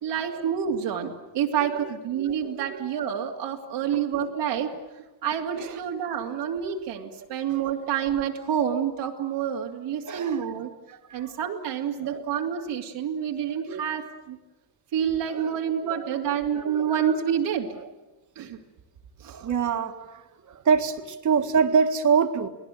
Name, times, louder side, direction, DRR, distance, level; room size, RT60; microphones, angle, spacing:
voice 1, 0.0-4.7 5.2-10.7 11.1-14.4 14.9-17.8 18.4-18.6 19.2-19.4, right 8 dB, 85° right, 2.8 m, -28 dB
voice 2, 2.2-2.9 3.9-4.0 5.6-5.8 10.1-10.5 10.9-11.4 12.1-12.2 13.7-13.8 15.3-15.5 15.9-16.1 16.5-16.9 19.3-20.2 20.5-22.5, right 6 dB, 45° right, 1.8 m, -26 dB
29.5 x 19.0 x 9.2 m
cardioid pair, 140°, 40 cm